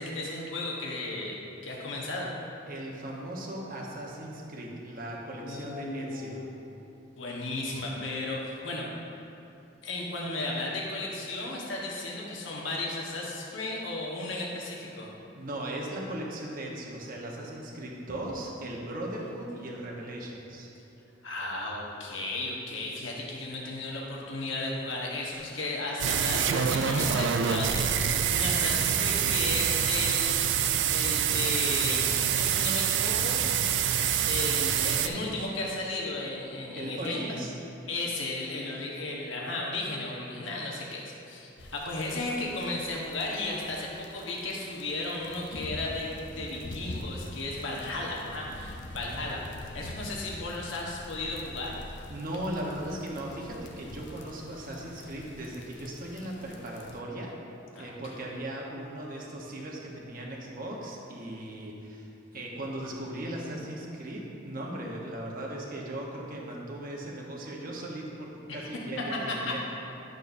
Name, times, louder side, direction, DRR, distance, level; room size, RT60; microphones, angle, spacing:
voice 1, 0.0-2.3 5.4-6.5 7.2-8.9 9.8-15.1 21.2-33.4 34.3-37.4 37.9-49.4 49.7-51.7 57.7-57.9 68.5-68.8 69.3-69.4, left 2 dB, 85° left, -3 dB, 1.2 m, -34 dB
voice 2, 2.7-6.5 15.3-20.7 36.7-37.5 48.9-49.2 52.1-57.3 57.8-69.6, right 1 dB, 50° right, -2 dB, 1.1 m, -38 dB
sound 1, 26.0-35.1, right 8 dB, 70° right, 0.4 m, -26 dB
sound 2, 41.6-57.0, left 1 dB, 65° left, 0.6 m, -44 dB
10.5 x 6.5 x 2.7 m, 2.8 s
head